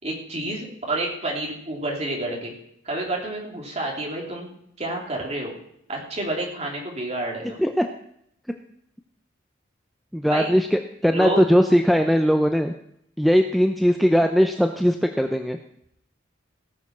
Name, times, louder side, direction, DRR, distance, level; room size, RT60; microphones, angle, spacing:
voice 1, 0.0-2.5 2.8-4.5 4.8-5.5 5.9-7.6 10.3-10.5 11.0-11.4, right 1 dB, 35° right, -1 dB, 3.4 m, -29 dB
voice 2, 10.1-12.7 13.2-15.6, equal, ahead, 5 dB, 0.5 m, -19 dB
18.0 x 6.7 x 6.1 m, 0.73 s
head